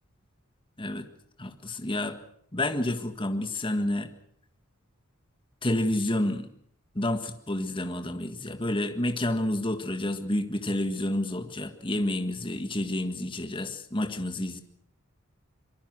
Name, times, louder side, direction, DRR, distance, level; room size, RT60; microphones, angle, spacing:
voice 1, 1.4-2.2 2.5-4.1 5.6-6.5 6.9-14.6, left 1 dB, 25° left, 7 dB, 1.7 m, -29 dB
24.5 x 23.0 x 6.2 m, 0.66 s
head